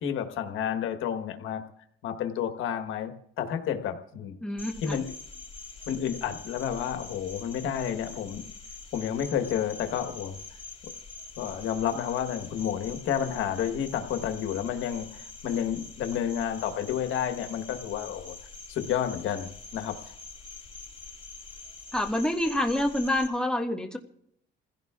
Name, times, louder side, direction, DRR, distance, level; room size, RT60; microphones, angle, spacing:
voice 1, 0.0-1.6 2.0-4.4 4.8-5.1 5.9-8.4 8.9-10.4 11.4-18.3 18.7-20.1, left 9 dB, 85° left, 6 dB, 1.4 m, -30 dB
voice 2, 4.4-5.0 21.9-24.0, left 1 dB, 5° left, 2 dB, 1.7 m, -27 dB
Cricket, 4.6-23.3, left 4 dB, 25° left, 5.9 m, -45 dB
28.0 x 16.0 x 2.4 m, 0.72 s
cardioid pair, 90°, 20 cm